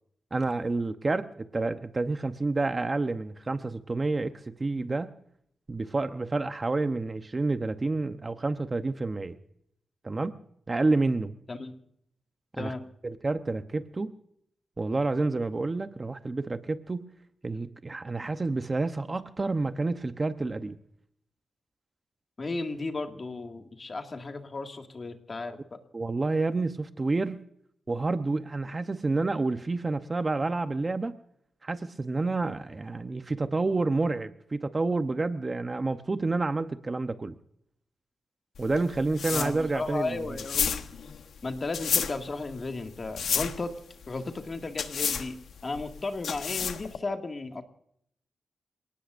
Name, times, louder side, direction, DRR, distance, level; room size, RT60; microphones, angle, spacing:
voice 1, 0.3-5.1 5.7-9.3 10.0-10.4 10.7-11.3 12.6-12.7 13.0-14.1 14.8-17.1 17.4-20.8 25.9-27.4 27.9-31.2 31.6-37.4 38.6-40.3, right 3 dB, 25° right, 9 dB, 0.8 m, -29 dB
voice 2, 12.6-12.9 22.4-25.8 39.3-40.8 41.4-43.7 44.1-47.6, left 3 dB, 35° left, 5 dB, 2.1 m, -35 dB
sound 1, 38.6-47.0, left 7 dB, 80° left, 1.2 m, -32 dB
28.0 x 18.5 x 2.6 m, 0.71 s
wide cardioid pair, 120°, 0 cm